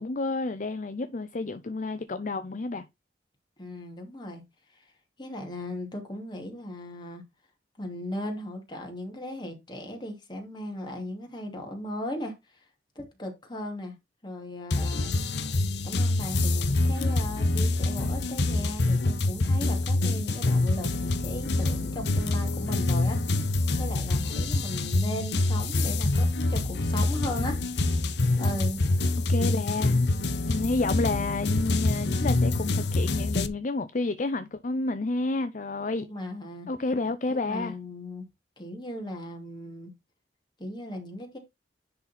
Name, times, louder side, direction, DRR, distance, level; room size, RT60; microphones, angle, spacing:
voice 1, 0.0-2.9 29.3-30.1 30.5-36.1 36.7-37.7, left 3 dB, 45° left, 0.6 m, -30 dB
voice 2, 3.6-4.4 4.7-4.9 5.2-7.2 7.8-12.6 13.0-13.9 14.2-15.2 15.8-23.4 23.8-27.6 28.4-28.8 36.1-36.7 37.3-38.2 38.6-39.9 40.6-41.4, left 1 dB, 25° left, 2.5 m, -37 dB
sound 1, 14.7-33.5, left 2 dB, 75° left, 0.9 m, -26 dB
10.5 x 4.1 x 4.3 m
head